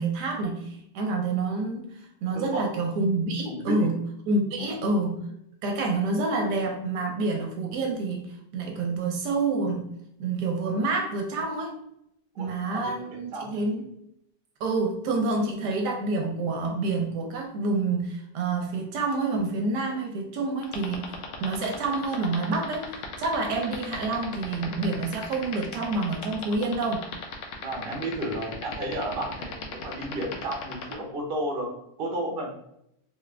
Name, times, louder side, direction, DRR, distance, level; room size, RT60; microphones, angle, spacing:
voice 1, 0.0-1.9 2.2-5.3 5.6-9.9 10.2-11.8 12.4-13.9 14.6-27.1, right 3 dB, 75° right, 2 dB, 1.1 m, -28 dB
voice 2, 3.5-3.9 4.6-4.7 12.3-13.5 27.6-31.7 32.0-32.5, right 1 dB, 45° right, 0 dB, 0.7 m, -32 dB
sound 1, 20.6-30.9, left 7 dB, 85° left, 1.3 m, -35 dB
3.5 x 2.4 x 3.2 m, 0.77 s
omnidirectional pair, 1.9 m